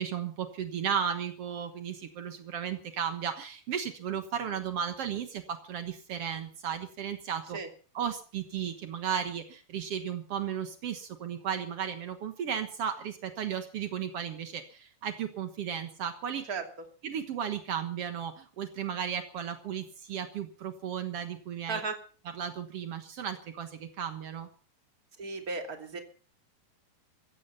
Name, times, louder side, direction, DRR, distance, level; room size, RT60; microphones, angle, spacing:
voice 1, 0.0-7.6 7.9-16.5 17.0-21.8 22.3-24.5, right 8 dB, 80° right, 8 dB, 1.3 m, -35 dB
voice 2, 25.2-26.0, right 4 dB, 25° right, 5 dB, 2.4 m, -35 dB
16.0 x 15.0 x 5.7 m, 0.41 s
omnidirectional pair, 4.8 m